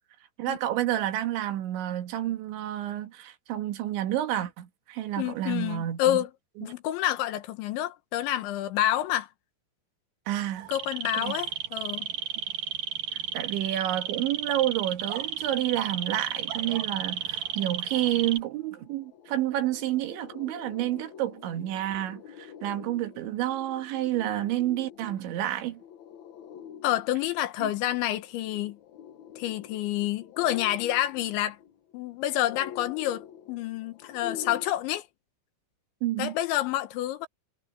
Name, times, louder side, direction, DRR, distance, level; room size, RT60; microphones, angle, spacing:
voice 1, 0.4-6.2 6.6-6.7 10.3-10.7 11.1-11.4 13.3-25.8 27.6-27.7 36.0-36.4, right 13 dB, 90° right, 4.1 m, -29 dB
voice 2, 5.2-6.3 6.6-9.3 10.7-12.1 26.8-28.8 29.4-31.6 31.9-35.0 36.2-37.3, left 13 dB, 85° left, 3.6 m, -28 dB
sound 1, 10.6-18.4, right 8 dB, 55° right, 2.9 m, -33 dB
sound 2, 18.1-18.2 18.5-34.6, left 9 dB, 70° left, 1.8 m, -46 dB
omnidirectional pair, 5.2 m